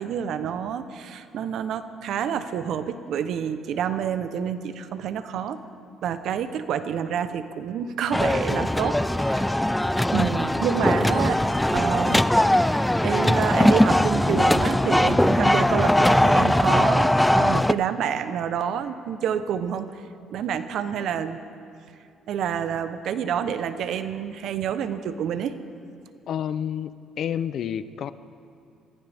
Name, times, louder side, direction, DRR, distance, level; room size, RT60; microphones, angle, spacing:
voice 1, 0.0-5.6 6.0-9.6 10.1-11.4 11.7-12.3 12.7-19.9 20.3-21.4 22.3-25.6, right 8 dB, 65° right, 11 dB, 0.8 m, -28 dB
sound 1, 8.1-17.7, left 1 dB, 5° left, 0.3 m, -20 dB
voice 2, 26.3-26.9 27.2-28.1, left 9 dB, 60° left, 15 dB, 0.5 m, -29 dB
22.5 x 15.0 x 3.5 m, 2.5 s
cardioid pair, 95°, 0 cm